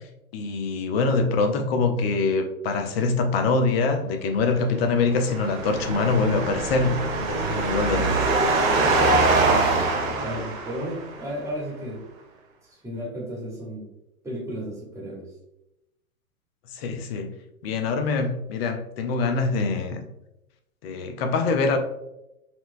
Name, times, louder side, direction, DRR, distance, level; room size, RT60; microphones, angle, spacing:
voice 1, 0.3-7.0 7.3-8.1 16.7-17.3 17.6-20.1 20.8-21.8, left 4 dB, 45° left, 6 dB, 0.6 m, -24 dB
sound 1, 4.8-11.2, right 3 dB, 65° right, 0.9 m, -23 dB
voice 2, 10.2-12.0 12.6-13.9 14.2-15.3, equal, 5° right, -5 dB, 1.0 m, -34 dB
4.2 x 2.2 x 2.5 m, 0.88 s
hypercardioid pair, 110°, 43 cm